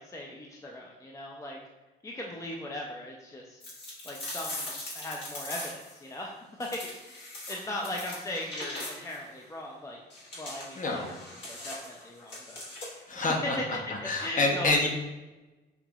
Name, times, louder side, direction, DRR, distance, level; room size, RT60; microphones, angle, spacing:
voice 1, 0.0-1.6 2.0-3.6 4.0-10.0 10.4-11.2 11.4-12.6 13.1-13.2 14.2-14.9, left 1 dB, 15° left, -1 dB, 0.5 m, -39 dB
sound 1, 3.6-6.0 6.6-9.2 10.1-13.1, left 1 dB, 60° left, 1.4 m, -41 dB
voice 2, 10.8-11.1 13.1-14.9, left 2 dB, 40° left, 0 dB, 0.9 m, -28 dB
5.8 x 2.8 x 2.3 m, 1.1 s
cardioid pair, 90°, 20 cm